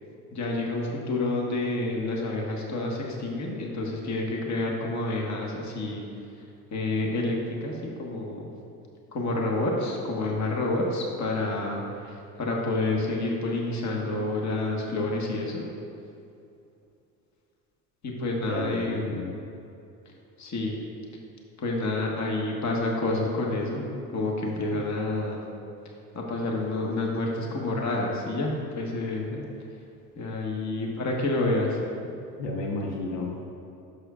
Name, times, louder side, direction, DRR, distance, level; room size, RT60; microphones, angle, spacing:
voice 1, 0.3-6.0 6.7-8.5 9.1-15.6 18.0-19.2 20.4-20.7 21.6-23.8 24.1-25.4 26.1-29.3 30.2-31.8, left 2 dB, 35° left, -1 dB, 1.4 m, -29 dB
voice 2, 18.5-19.4 24.7-24.9 29.3-29.4 32.4-33.4, left 2 dB, 80° left, 0 dB, 1.1 m, -32 dB
10.5 x 6.8 x 2.4 m, 2.6 s
hypercardioid pair, 75°, 48 cm